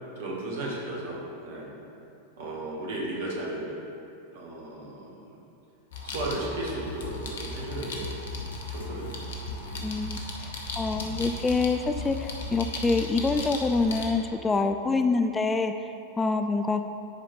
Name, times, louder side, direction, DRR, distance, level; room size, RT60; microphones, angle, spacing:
voice 1, 0.2-1.7 2.4-3.8 4.3-5.4 6.0-8.1 8.7-9.8, right 1 dB, 55° right, -3 dB, 2.0 m, -35 dB
sound 1, 5.9-14.0, left 2 dB, 60° left, 1.1 m, -36 dB
voice 2, 9.8-15.9 16.2-16.8, left 3 dB, 15° left, 7 dB, 0.3 m, -26 dB
10.5 x 4.9 x 4.5 m, 2.6 s
figure-of-eight pair, 90°, 0 cm